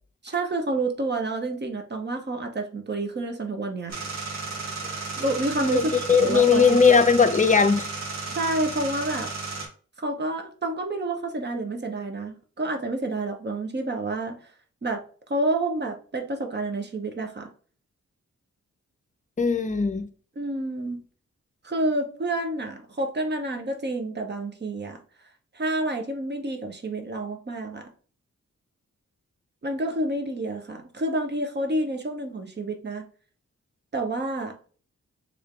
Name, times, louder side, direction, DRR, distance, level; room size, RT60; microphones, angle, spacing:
voice 1, 0.2-4.0 5.2-5.8 6.2-6.8 8.3-9.3 10.0-14.4 14.8-15.0 15.3-17.5 20.4-21.0 21.6-25.0 25.5-27.9 29.6-33.0 33.9-34.6, right 2 dB, 35° right, 1.0 m, -29 dB
sound 1, 3.9-9.7, right 4 dB, 65° right, 1.9 m, -34 dB
voice 2, 5.6-7.9 19.4-20.1, left 5 dB, 25° left, 0.6 m, -19 dB
3.5 x 3.5 x 3.6 m
wide cardioid pair, 125°, 29 cm